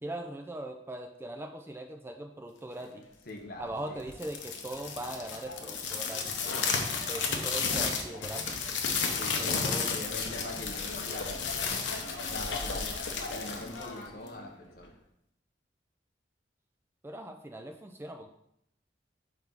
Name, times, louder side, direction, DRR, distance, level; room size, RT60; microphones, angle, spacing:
voice 1, 0.0-3.1 3.6-6.4 7.1-8.5 9.4-9.9 12.7-13.0 17.0-18.3, right 1 dB, 15° right, 5 dB, 0.3 m, -40 dB
voice 2, 3.3-4.0 9.1-11.7 12.3-12.9 13.3-14.9, left 2 dB, 55° left, 1 dB, 1.0 m, -43 dB
sound 1, 4.1-14.4, left 5 dB, 85° left, 0.8 m, -33 dB
4.6 x 4.0 x 5.4 m, 0.76 s
head